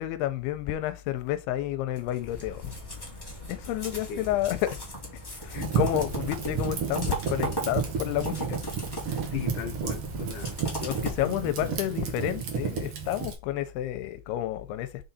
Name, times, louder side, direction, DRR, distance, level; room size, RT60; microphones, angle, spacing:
voice 1, 0.0-2.7 3.5-4.8 5.4-8.6 10.8-14.9, left 13 dB, 90° left, 2.6 m, -30 dB
sound 1, 2.0-11.7, right 1 dB, 25° left, 0.5 m, -38 dB
Fire, 5.5-13.3, right 6 dB, 80° right, 1.2 m, -32 dB
voice 2, 9.3-10.5 11.2-12.0, left 7 dB, 70° left, 2.1 m, -37 dB
6.2 x 4.0 x 4.1 m
omnidirectional pair, 4.6 m